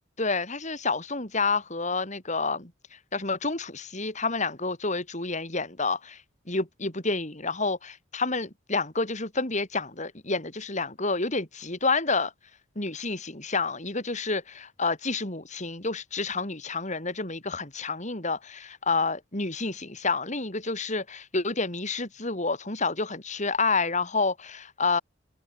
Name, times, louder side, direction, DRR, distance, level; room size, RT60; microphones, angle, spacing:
voice 1, 0.2-6.2 6.5-12.3 12.8-25.0, left 3 dB, 40° left, 4.3 m, -29 dB
head